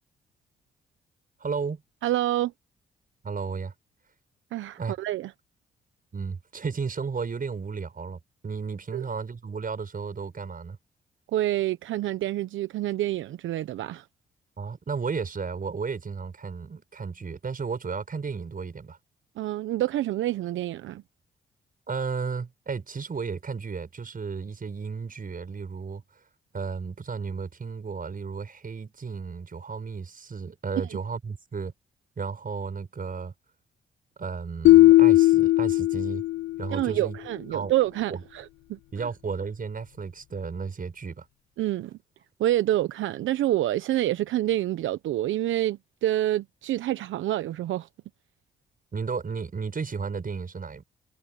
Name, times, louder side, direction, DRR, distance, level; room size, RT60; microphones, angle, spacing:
voice 1, 1.4-1.8 3.2-3.7 4.8-4.9 6.1-10.8 14.6-19.0 21.9-26.0 26.5-31.7 32.2-33.3 34.2-36.2 36.6-37.2 37.5-37.7 38.1-38.2 38.9-41.3 48.9-50.8, right 5 dB, 45° right, 6.1 m, -33 dB
voice 2, 2.0-2.5 4.5-5.3 8.9-9.0 11.3-14.0 19.4-21.0 36.7-38.8 41.6-41.9 42.4-47.9, right 14 dB, 75° right, 1.0 m, -27 dB
sound 1, 34.7-36.8, left 17 dB, 65° left, 0.4 m, -17 dB
hypercardioid pair, 50°, 20 cm